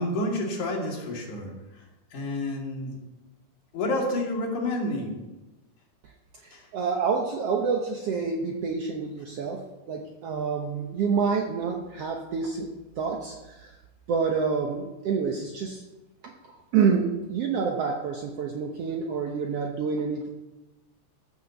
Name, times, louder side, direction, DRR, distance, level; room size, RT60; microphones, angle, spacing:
voice 1, 0.0-1.8 2.1-3.0 3.7-5.1 6.5-6.6, left 1 dB, 80° left, -1 dB, 3.9 m, -29 dB
voice 2, 6.4-12.7 13.0-13.8 14.1-15.8 16.4-20.3, right 5 dB, 65° right, 1 dB, 1.8 m, -28 dB
14.5 x 6.9 x 7.1 m, 1.1 s
omnidirectional pair, 3.4 m